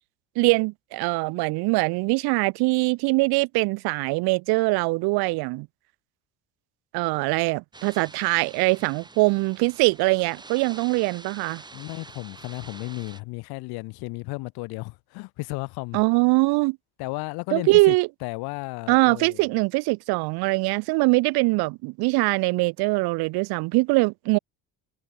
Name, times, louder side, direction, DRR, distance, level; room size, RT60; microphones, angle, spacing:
voice 1, 0.4-5.7 6.9-11.6 15.9-16.8 17.5-18.1 18.9-24.4, right 25 dB, 80° right, 1.0 m, -22 dB
sound 1, 7.7-13.2, right 3 dB, 10° right, 7.6 m, -46 dB
voice 2, 11.7-16.0 17.0-18.0 18.2-19.5, left 25 dB, 85° left, 1.5 m, -34 dB
cardioid pair, 175°, 37 cm